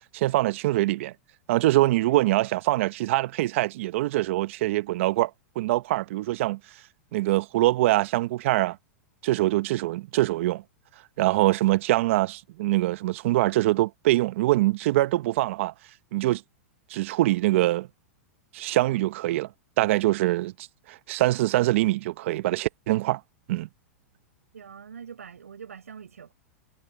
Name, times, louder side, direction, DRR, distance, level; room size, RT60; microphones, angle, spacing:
voice 1, 0.1-1.1 1.5-5.3 5.6-6.6 7.1-8.8 9.2-10.6 11.2-15.7 16.1-16.4 16.9-17.9 18.5-19.5 19.8-20.5 20.9-23.2 23.5-23.7, right 17 dB, 60° right, 0.8 m, -24 dB
voice 2, 24.5-26.3, right 7 dB, 90° right, 7.3 m, -43 dB
hypercardioid pair, 115°, 8 cm